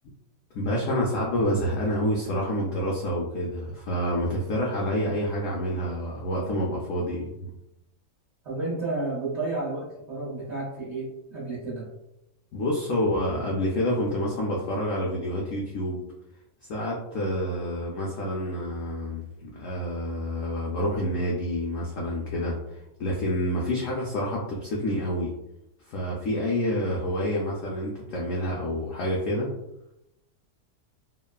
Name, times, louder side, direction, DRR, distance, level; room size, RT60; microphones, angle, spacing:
voice 1, 0.5-7.5 12.5-16.0 16.7-25.3 25.9-29.5, equal, 80° left, -3 dB, 0.7 m, -28 dB
voice 2, 8.4-11.8, right 2 dB, 50° right, -7 dB, 0.8 m, -31 dB
3.1 x 2.1 x 2.2 m, 0.89 s
omnidirectional pair, 1.9 m